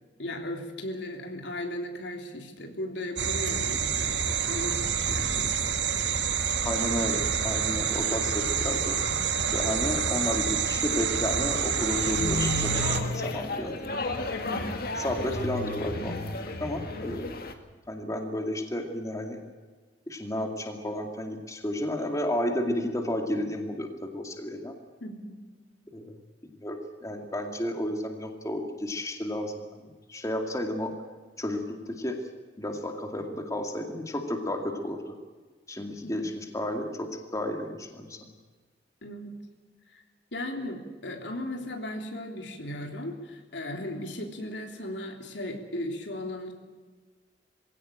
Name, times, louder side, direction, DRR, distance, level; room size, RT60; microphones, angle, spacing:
voice 1, 0.2-4.2 4.5-5.7 8.2-8.3 14.4-14.8 25.0-25.4 36.0-36.2 39.0-39.4 39.9-40.0 40.3-46.5, left 1 dB, 75° left, 3 dB, 3.4 m, -36 dB
sound 1, 3.2-13.0, right 7 dB, 75° right, 1.9 m, -27 dB
voice 2, 6.6-9.0 9.5-14.2 15.0-17.3 17.9-19.4 20.1-24.7 25.9-26.1 26.6-29.8 30.1-30.9 31.4-31.6 31.9-32.2 32.6-35.0 35.7-38.2, left 1 dB, 20° left, 3 dB, 2.3 m, -32 dB
sound 2, 11.9-17.5, left 2 dB, 55° left, 2.1 m, -32 dB
22.0 x 17.0 x 8.9 m, 1.4 s
head